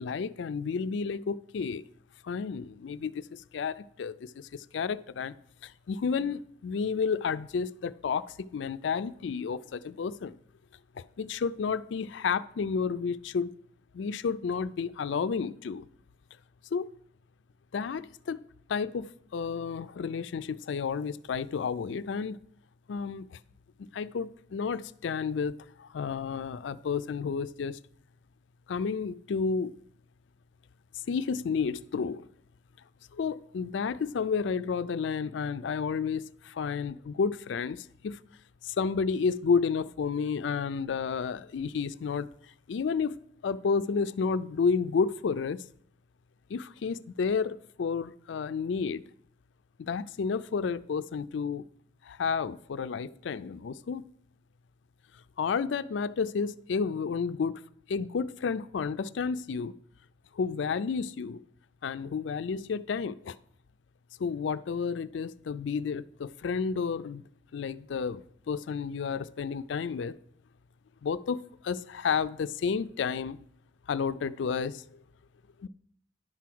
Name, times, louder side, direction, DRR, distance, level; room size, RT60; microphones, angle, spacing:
voice 1, 0.0-1.8 2.2-5.3 5.6-10.4 11.0-13.5 13.9-15.9 16.7-16.9 17.7-18.4 18.7-22.4 22.9-23.4 23.8-27.8 28.7-29.7 31.1-32.3 33.1-38.2 38.6-42.3 42.7-45.6 46.5-49.0 49.8-51.6 52.0-54.1 55.4-57.6 57.9-59.7 60.3-61.4 61.8-63.4 64.2-67.2 67.5-70.2 71.0-73.4 73.9-74.8 75.6-75.7, left 5 dB, 70° left, 0.4 m, -31 dB
11.0 x 4.7 x 6.0 m
head